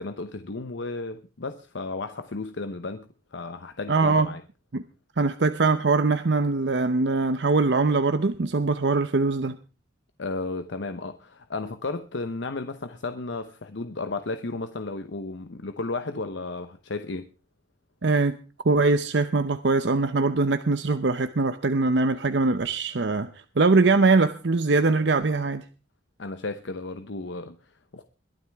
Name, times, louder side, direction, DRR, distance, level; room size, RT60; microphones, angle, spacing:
voice 1, 0.0-4.4 10.2-17.3 26.2-28.0, left 3 dB, 75° left, 0.9 m, -34 dB
voice 2, 3.9-4.3 4.7-4.8 5.2-9.6 18.0-18.4 18.6-23.3 23.6-25.6, right 3 dB, 70° right, 0.7 m, -22 dB
22.0 x 11.5 x 3.5 m
head